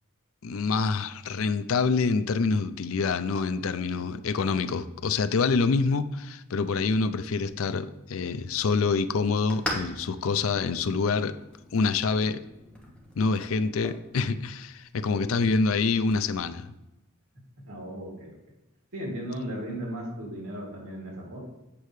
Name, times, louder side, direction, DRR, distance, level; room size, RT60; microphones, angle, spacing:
voice 1, 0.4-11.4 11.7-12.4 13.2-16.7, left 4 dB, 70° left, 12 dB, 0.5 m, -26 dB
sound 1, 7.4-16.3, left 1 dB, 5° left, 1.2 m, -42 dB
voice 2, 17.6-18.3 18.9-21.4, equal, 75° right, -2 dB, 2.7 m, -36 dB
8.5 x 6.6 x 3.2 m, 0.96 s
head